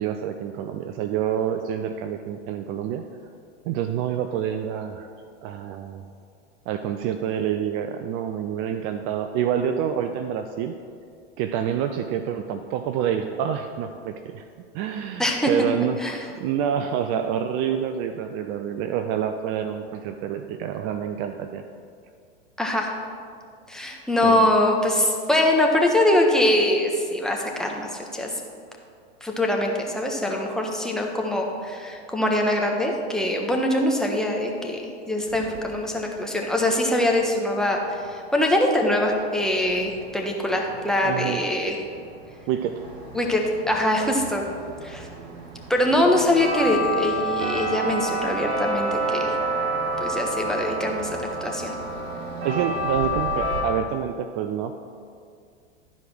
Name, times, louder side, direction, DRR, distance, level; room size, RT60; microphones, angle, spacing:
voice 1, 0.0-3.0 3.7-5.1 5.4-6.0 6.7-10.7 11.4-14.4 14.7-16.0 16.4-21.6 24.2-24.5 41.0-41.4 42.5-42.8 52.4-54.7, right 9 dB, 40° right, 7 dB, 0.5 m, -27 dB
voice 2, 15.2-15.5 16.0-16.3 22.6-22.9 23.7-28.3 29.2-41.8 43.1-44.4 44.8-45.1 45.7-49.4 50.0-51.7, left 1 dB, ahead, 0 dB, 1.2 m, -23 dB
sound 1, 35.2-36.1 39.1-39.2 39.4-53.6, right 1 dB, 70° right, 2.1 m, -30 dB
12.0 x 4.9 x 6.1 m, 2.3 s
hypercardioid pair, 110°, 33 cm